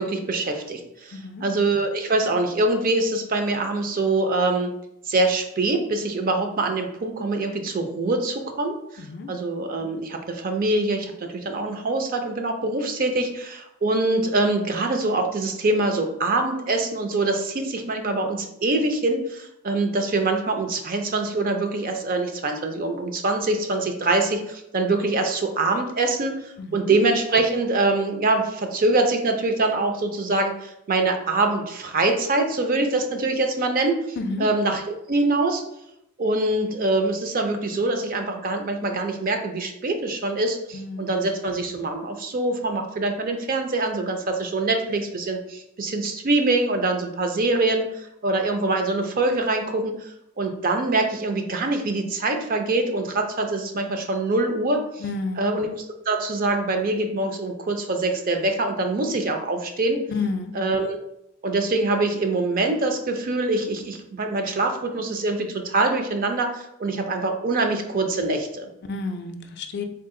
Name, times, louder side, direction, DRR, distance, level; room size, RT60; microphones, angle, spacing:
voice 1, 0.0-4.7 5.1-35.6 36.2-50.1 50.4-55.0 55.4-60.0 60.5-61.0 61.4-68.7, right 2 dB, 40° right, 5 dB, 0.4 m, -24 dB
voice 2, 1.1-1.4 9.1-9.3 26.6-26.9 34.2-34.4 40.7-41.2 55.0-55.5 60.1-60.5 68.9-69.8, left 3 dB, 50° left, 6 dB, 0.4 m, -30 dB
3.7 x 2.4 x 3.6 m, 0.80 s
head